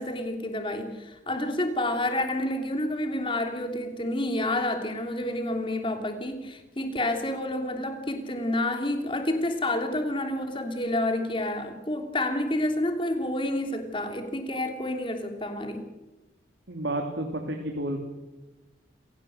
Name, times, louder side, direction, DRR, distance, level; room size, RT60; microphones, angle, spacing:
voice 1, 0.0-15.9, left 1 dB, 30° left, 3.1 m, -29 dB
voice 2, 16.7-18.0, right 1 dB, 85° right, 3.0 m, -31 dB
27.5 x 17.5 x 8.0 m
head